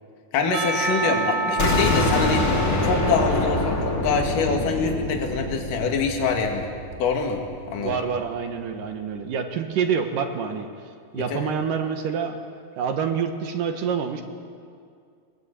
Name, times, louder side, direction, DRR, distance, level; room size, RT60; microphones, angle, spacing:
voice 1, 0.3-2.5 2.8-6.7 7.0-7.4 7.7-8.0 11.1-11.4, left 4 dB, 65° left, 2 dB, 3.6 m, -24 dB
Percussion / Church bell, 0.5-4.5, right 3 dB, 45° right, 1.6 m, -29 dB
voice 2, 1.0-1.6 7.8-10.7 11.1-12.4 12.8-14.2, right 6 dB, 65° right, 5 dB, 2.9 m, -27 dB
sound 1, 1.6-7.4, left 2 dB, 35° left, 3.5 m, -25 dB
21.5 x 20.0 x 8.5 m, 2.2 s
omnidirectional pair, 4.3 m